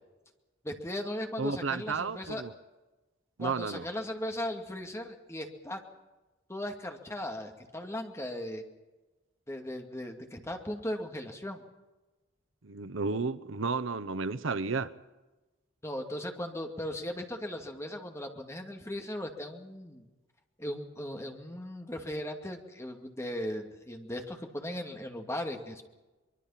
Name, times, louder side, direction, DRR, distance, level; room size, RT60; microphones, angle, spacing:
voice 1, 0.6-2.4 3.4-5.8 6.5-8.6 9.5-11.6 15.8-20.0 20.6-25.8, left 1 dB, 15° left, 4 dB, 2.3 m, -37 dB
voice 2, 1.4-2.5 3.4-3.9 12.6-14.9, right 4 dB, 80° right, 14 dB, 0.9 m, -32 dB
24.5 x 23.0 x 5.8 m, 1.1 s
head